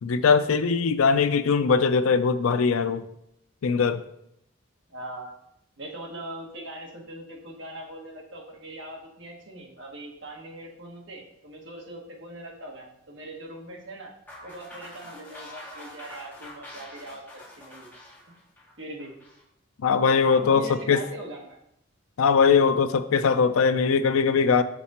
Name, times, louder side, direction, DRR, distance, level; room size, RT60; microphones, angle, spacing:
voice 1, 0.0-3.0 3.6-4.0 19.8-21.0 22.2-24.6, left 5 dB, 90° left, 0.4 m, -21 dB
voice 2, 4.9-5.3 5.8-14.1 14.4-17.9 18.3-18.4 18.8-19.1 20.2-21.6, right 1 dB, 60° right, 1.4 m, -41 dB
sound 1, 14.3-19.4, left 1 dB, 10° left, 1.5 m, -45 dB
6.0 x 4.9 x 4.2 m
head